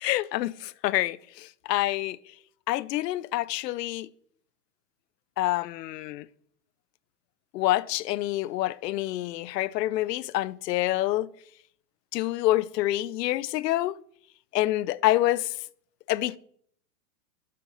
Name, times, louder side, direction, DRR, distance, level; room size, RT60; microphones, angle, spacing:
voice 1, 0.0-2.2 2.7-4.1 5.4-6.3 7.5-11.3 12.1-14.0 14.5-15.5 16.1-16.4, left 16 dB, 75° left, 0.5 m, -27 dB
9.4 x 7.6 x 3.9 m
supercardioid pair, 170°, 50 cm